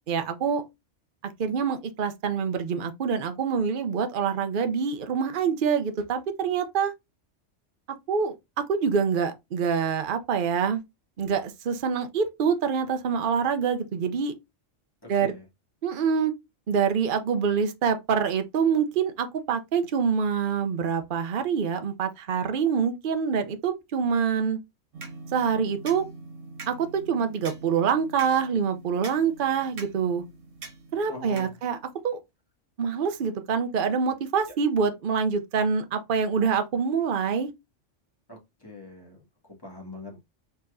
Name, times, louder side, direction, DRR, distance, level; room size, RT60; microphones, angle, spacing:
voice 1, 0.1-0.6 1.2-6.9 8.1-10.8 11.2-14.3 15.1-15.3 15.8-16.3 16.7-24.6 25.3-26.1 26.7-30.2 30.9-31.8 32.0-32.2 32.8-37.5, right 6 dB, 50° right, 0.8 m, -26 dB
voice 2, 15.0-15.4 31.1-31.6 34.5-34.6 38.3-40.2, left 2 dB, 20° left, 2.3 m, -43 dB
sound 1, 24.9-32.0, right 3 dB, 80° right, 1.5 m, -44 dB
4.4 x 4.1 x 2.6 m
omnidirectional pair, 1.3 m